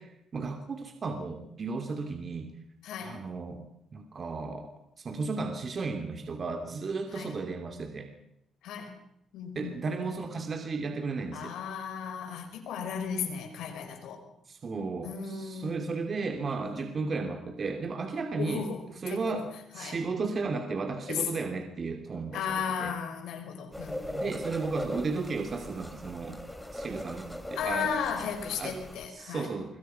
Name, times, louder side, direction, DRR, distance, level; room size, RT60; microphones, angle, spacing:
voice 1, 0.0-2.5 3.0-3.6 3.9-4.7 5.0-8.1 9.5-11.5 14.5-22.9 24.1-26.4 26.7-28.0 28.6-29.8, right 4 dB, 40° right, 5 dB, 2.8 m, -34 dB
voice 2, 2.8-3.2 7.1-7.3 8.6-8.9 9.3-9.7 11.3-14.2 15.0-15.9 17.0-17.1 18.4-18.8 19.1-19.4 19.7-19.9 21.1-21.2 22.3-24.4 27.6-29.5, left 7 dB, 85° left, 5 dB, 5.8 m, -35 dB
sound 1, 23.7-29.1, left 1 dB, 5° left, 3.1 m, -40 dB
26.0 x 23.5 x 5.8 m, 0.79 s
cardioid pair, 90°, 0 cm